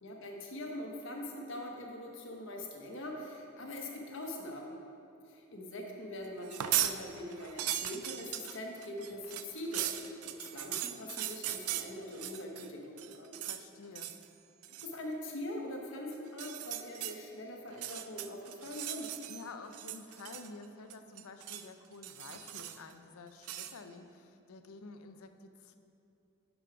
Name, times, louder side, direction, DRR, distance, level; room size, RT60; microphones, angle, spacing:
voice 1, 0.0-4.7 5.3-13.4 14.8-19.1, left 1 dB, 60° left, 1 dB, 1.1 m, -43 dB
sound 1, 6.4-7.0 7.3-12.7 13.0-13.6 13.9-14.3 14.6-14.9 16.3-17.2 17.7-19.4 19.7-20.6 20.9-21.7 22.0-22.9 23.4-23.8, right 12 dB, 85° right, 0.4 m, -38 dB
voice 2, 13.4-14.1 19.3-25.8, left 3 dB, 80° left, 8 dB, 0.5 m, -50 dB
6.6 x 6.1 x 5.1 m, 2.7 s
head